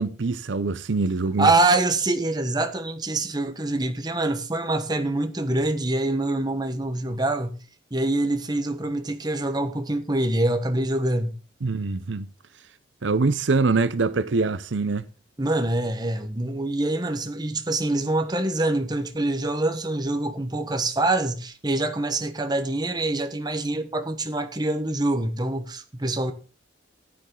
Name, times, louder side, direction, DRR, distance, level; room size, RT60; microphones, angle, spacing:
voice 1, 0.0-1.5 11.6-12.3 13.0-15.1, right 3 dB, 80° right, 0.7 m, -24 dB
voice 2, 1.4-7.6 7.9-11.3 15.4-26.3, right 2 dB, 25° right, 1.3 m, -25 dB
14.5 x 9.7 x 3.9 m
head